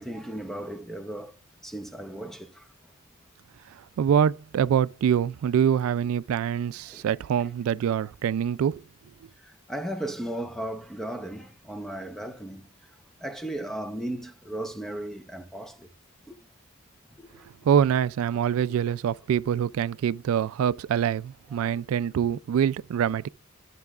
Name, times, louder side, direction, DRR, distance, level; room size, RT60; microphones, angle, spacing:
voice 1, 0.0-1.3 1.6-2.7 6.9-7.1 9.4-12.7 13.2-15.9 16.3-16.4 17.2-17.5, right 1 dB, ahead, 0.6 m, -36 dB
voice 2, 4.0-8.8 17.6-23.3, right 8 dB, 85° right, 0.3 m, -25 dB
12.0 x 6.7 x 2.4 m
head